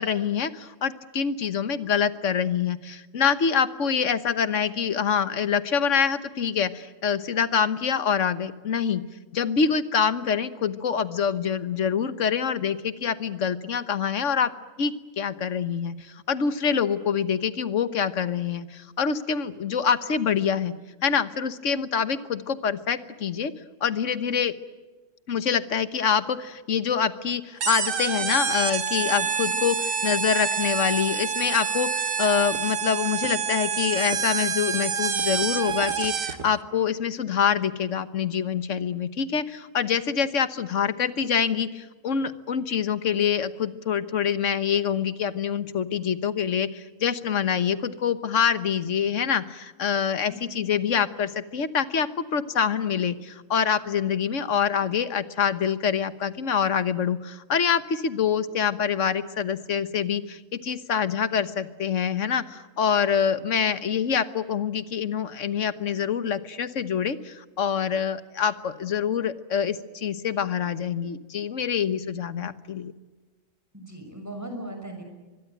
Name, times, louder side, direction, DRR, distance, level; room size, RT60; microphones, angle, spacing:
voice 1, 0.0-9.0 9.3-14.5 14.8-20.7 21.0-23.5 23.8-24.5 25.3-72.9, left 7 dB, 70° left, 13 dB, 1.5 m, -25 dB
sound 1, 27.6-36.5, right 7 dB, 80° right, 1.7 m, -27 dB
voice 2, 29.2-29.6 50.3-50.5 73.7-75.0, right 1 dB, 10° right, 4 dB, 5.9 m, -39 dB
24.5 x 22.0 x 9.2 m, 1.3 s
omnidirectional pair, 1.3 m